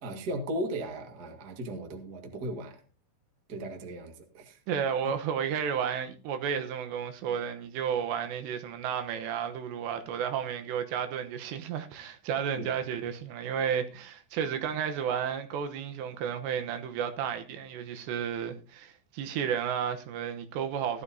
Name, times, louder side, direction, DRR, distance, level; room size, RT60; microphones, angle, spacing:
voice 1, 0.0-2.8 3.5-4.6 12.5-12.7, right 1 dB, 40° right, 1.3 m, -36 dB
voice 2, 4.7-21.0, right 8 dB, 90° right, 3.4 m, -32 dB
16.0 x 12.5 x 2.8 m
omnidirectional pair, 4.9 m